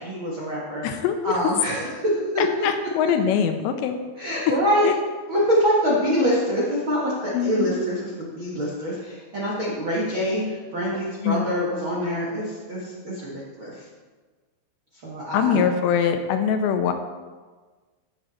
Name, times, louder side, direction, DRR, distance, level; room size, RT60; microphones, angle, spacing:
voice 1, 0.0-0.8 1.2-2.7 4.2-4.9 5.3-13.8 15.0-15.6, equal, 80° right, -5 dB, 1.1 m, -25 dB
voice 2, 0.8-1.4 2.4-4.0 4.8-4.9 7.3-7.7 11.2-11.5 15.3-16.9, left 7 dB, 80° left, 7 dB, 2.7 m, -23 dB
12.0 x 7.4 x 4.2 m, 1.4 s
omnidirectional pair, 5.3 m